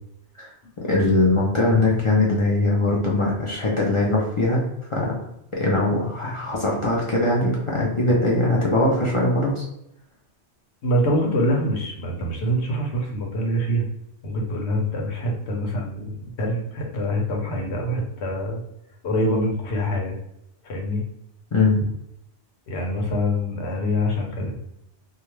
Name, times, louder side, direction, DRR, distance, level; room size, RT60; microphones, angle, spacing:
voice 1, 0.9-4.6 4.9-5.1 5.5-9.6 21.5-21.8 24.4-24.5, left 2 dB, 50° left, -3 dB, 0.3 m, -21 dB
voice 2, 10.8-13.9 14.2-18.6 19.0-20.2 20.6-21.0 22.7-24.6, equal, 70° left, 0 dB, 0.9 m, -25 dB
2.3 x 2.2 x 3.0 m, 0.79 s
omnidirectional pair, 1.2 m